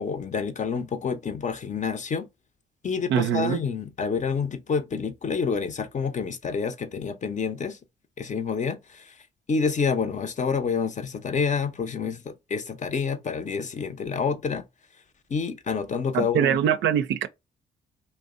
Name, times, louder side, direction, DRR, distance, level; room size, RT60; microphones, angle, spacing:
voice 1, 0.0-2.3 2.8-7.8 8.2-9.1 9.5-14.6 15.3-16.6, left 5 dB, 40° left, 0.5 m, -28 dB
voice 2, 3.1-3.7 16.1-17.3, right 9 dB, 70° right, 0.4 m, -23 dB
2.6 x 2.0 x 2.4 m
supercardioid pair, 55°, 20 cm